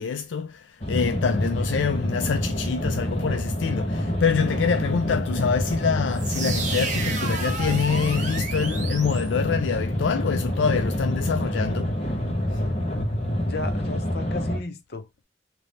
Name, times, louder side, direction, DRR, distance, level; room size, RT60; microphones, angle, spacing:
voice 1, 0.0-11.9 12.5-12.6, left 6 dB, 85° left, 0.4 m, -26 dB
sound 1, 0.8-14.6, equal, 35° left, 1.0 m, -27 dB
sound 2, 6.1-9.9, right 4 dB, 40° right, 1.0 m, -33 dB
voice 2, 13.4-15.2, left 3 dB, 60° left, 0.8 m, -35 dB
3.4 x 2.9 x 4.0 m
head